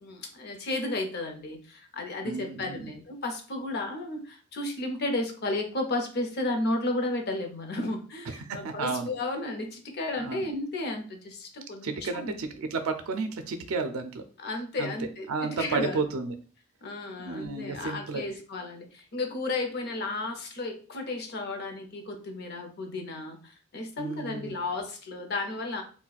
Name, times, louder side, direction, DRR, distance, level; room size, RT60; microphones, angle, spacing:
voice 1, 0.0-12.4 14.4-16.1 16.8-25.8, left 2 dB, 50° left, 4 dB, 0.6 m, -33 dB
voice 2, 2.2-2.9 8.3-9.1 10.2-10.4 11.8-14.2 14.8-14.9 15.3-16.3 17.2-18.2 24.0-24.6, right 4 dB, 90° right, 7 dB, 0.4 m, -32 dB
4.0 x 2.1 x 2.3 m, 0.39 s
head